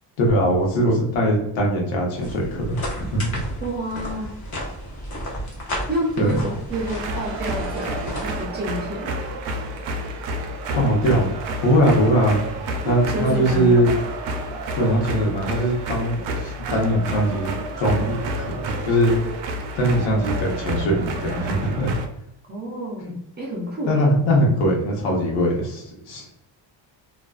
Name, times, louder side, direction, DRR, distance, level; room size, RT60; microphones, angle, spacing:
voice 1, 0.2-3.4 6.2-6.4 10.7-11.3 11.6-12.4 12.8-13.9 14.7-19.2 19.7-21.9 23.0-23.1 23.9-26.3, equal, 85° left, -1 dB, 0.9 m, -21 dB
sound 1, 2.2-8.5, equal, 40° left, 0.7 m, -33 dB
voice 2, 3.6-4.3 5.9-9.1 12.8-13.9 22.5-24.1, equal, 25° right, -3 dB, 0.3 m, -29 dB
sound 2, 6.7-22.1, right 1 dB, 75° right, 0.5 m, -30 dB
2.4 x 2.2 x 2.3 m, 0.79 s
cardioid pair, 170°, 45 cm